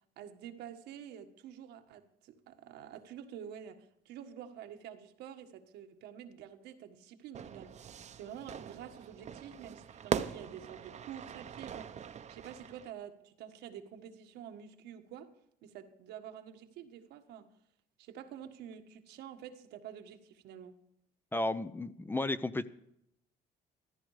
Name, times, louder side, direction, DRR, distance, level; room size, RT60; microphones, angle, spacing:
voice 1, 0.2-15.3 15.6-17.5 18.0-20.8, right 9 dB, 80° right, 1.6 m, -48 dB
Fire / Fireworks, 7.3-12.9, right 8 dB, 45° right, 0.9 m, -41 dB
voice 2, 21.3-22.7, left 2 dB, 10° left, 0.7 m, -33 dB
15.0 x 14.0 x 4.9 m
cardioid pair, 110°, 17 cm